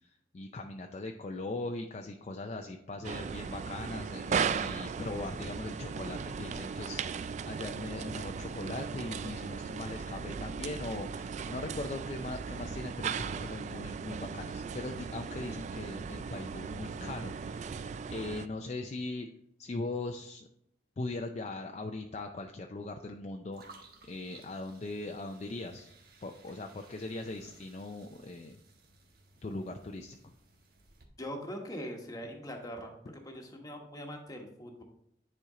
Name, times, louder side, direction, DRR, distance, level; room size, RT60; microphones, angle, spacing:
voice 1, 0.3-19.3 19.6-20.5 21.0-23.6 24.1-25.9 26.2-28.6 29.4-30.2, left 2 dB, 40° left, 4 dB, 0.5 m, -40 dB
sound 1, 3.0-18.5, right 6 dB, 40° right, 0.3 m, -37 dB
sound 2, 23.5-31.0, right 3 dB, 60° right, 1.2 m, -58 dB
voice 2, 31.2-32.9 33.2-34.8, equal, 20° left, 2 dB, 1.2 m, -42 dB
10.0 x 4.4 x 3.7 m, 0.74 s
head